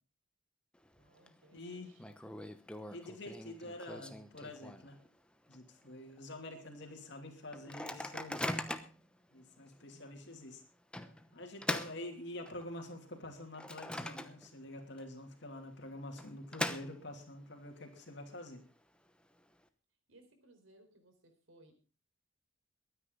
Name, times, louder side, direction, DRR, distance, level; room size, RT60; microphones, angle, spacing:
Microwave oven, 0.8-1.3 1.6-1.7 2.0-5.1 5.5-5.6 5.9-6.2 6.7-6.8 7.5-9.1 9.7-9.8 10.9-12.8 13.2-14.7 15.0-15.1 15.9-17.4, left 1 dB, 5° left, 0.9 m, -41 dB
voice 1, 1.0-2.1 9.8-10.2 20.1-21.7, right 1 dB, 80° right, 7 dB, 4.3 m, -63 dB
voice 2, 1.5-1.9 2.9-5.0 5.5-8.6 9.3-10.6 11.3-18.6, left 1 dB, 60° left, 4 dB, 2.8 m, -47 dB
22.5 x 9.7 x 3.9 m, 0.33 s
head